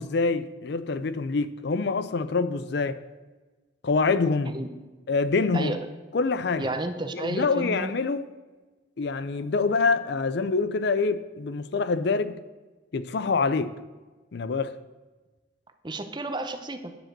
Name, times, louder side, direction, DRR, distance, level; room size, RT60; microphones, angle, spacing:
voice 1, 0.0-3.0 3.8-4.5 5.1-5.8 6.1-6.7 7.1-8.2 9.0-12.4 12.9-13.7 14.3-14.7, left 4 dB, 60° left, 13 dB, 0.5 m, -25 dB
voice 2, 6.6-7.9 15.8-16.9, right 2 dB, 25° right, 8 dB, 0.7 m, -31 dB
10.0 x 5.1 x 7.4 m, 1.3 s
head